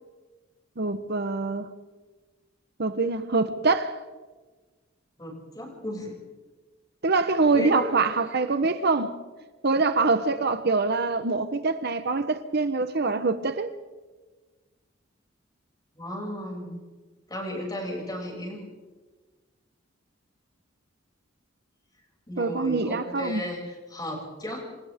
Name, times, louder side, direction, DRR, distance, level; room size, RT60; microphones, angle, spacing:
voice 1, 0.8-1.7 2.8-4.0 7.0-9.1 9.6-13.7 22.4-23.4, right 3 dB, 55° right, 1.1 m, -24 dB
voice 2, 5.2-6.2 7.5-7.9 15.9-16.8 17.3-18.6 22.3-24.7, left 1 dB, 20° left, 7.0 m, -34 dB
27.0 x 26.5 x 3.7 m
head